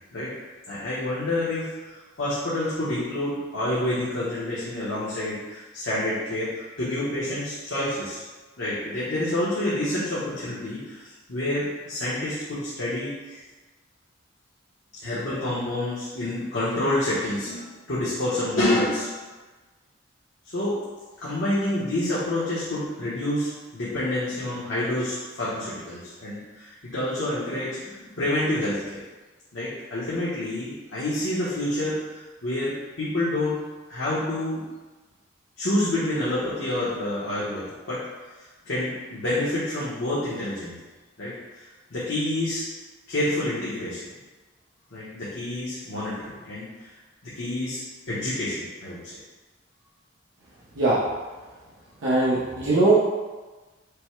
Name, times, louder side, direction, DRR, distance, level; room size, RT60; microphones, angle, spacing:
voice 1, 0.7-6.5 6.8-8.2 8.6-11.0 11.3-13.4 15.0-19.2 20.5-20.8 21.2-29.0 29.5-32.0 32.4-33.6 33.9-34.6 35.6-38.0 38.7-40.7 41.2-41.3 41.9-42.6 43.1-44.0 44.9-46.6 47.4-47.8 48.1-49.0, left 1 dB, 65° left, -10 dB, 1.1 m, -28 dB
voice 2, 52.0-53.0, right 2 dB, 85° right, -8 dB, 0.9 m, -20 dB
5.2 x 2.2 x 4.5 m, 1.3 s
head